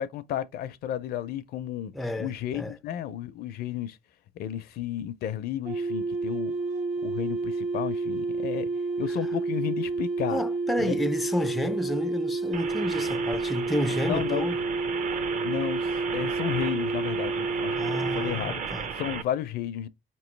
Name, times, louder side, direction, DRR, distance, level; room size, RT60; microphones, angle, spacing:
voice 1, 0.0-4.0 4.4-6.5 7.0-8.7 9.0-10.4 10.9-11.0 14.1-14.5 15.4-17.8 18.1-18.6 19.0-19.9, left 11 dB, 65° left, 0.5 m, -32 dB
voice 2, 1.9-2.8 10.3-14.6 17.8-18.9, left 1 dB, ahead, 0.3 m, -30 dB
sound 1, 5.6-18.4, right 3 dB, 80° right, 1.0 m, -30 dB
sound 2, 12.5-19.2, right 6 dB, 50° right, 0.6 m, -35 dB
4.4 x 3.0 x 3.1 m
cardioid pair, 110°, 17 cm